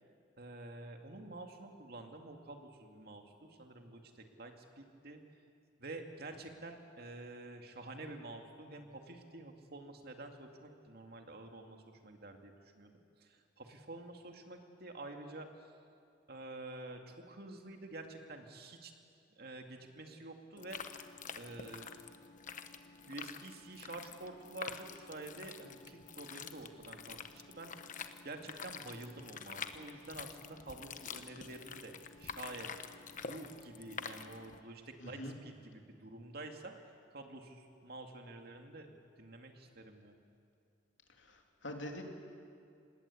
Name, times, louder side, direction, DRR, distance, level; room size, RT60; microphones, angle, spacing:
voice 1, 0.4-5.2 5.8-12.9 13.2-15.7 16.3-18.9 19.3-21.0 21.4-21.9 23.1-27.7 28.2-32.7 33.2-36.7 37.1-38.9 39.2-40.2, right 2 dB, 55° right, 4 dB, 2.4 m, -49 dB
sound 1, 20.6-34.6, left 6 dB, 45° left, 1.1 m, -47 dB
voice 2, 35.0-35.3 41.2-42.0, left 1 dB, 80° left, 2 dB, 3.3 m, -44 dB
26.5 x 20.0 x 8.6 m, 2.5 s
head